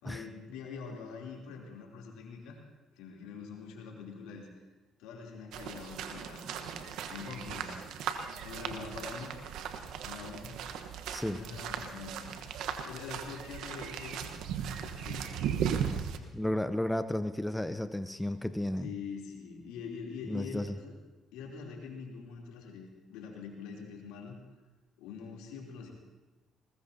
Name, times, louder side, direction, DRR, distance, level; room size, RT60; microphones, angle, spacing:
voice 1, 0.0-2.6 3.0-4.5 5.0-7.9 8.4-9.4 10.0-10.6 11.3-12.4 12.8-14.3 14.6-15.9 18.8-20.9 21.3-24.4 25.0-25.9, left 5 dB, 80° left, -1 dB, 3.2 m, -44 dB
sound 1, 5.5-16.2, right 8 dB, 75° right, 1.1 m, -37 dB
voice 2, 11.1-11.4 16.3-18.9 20.3-20.7, left 1 dB, 10° left, 10 dB, 0.7 m, -33 dB
20.5 x 20.0 x 2.8 m, 1.2 s
supercardioid pair, 65°, 0 cm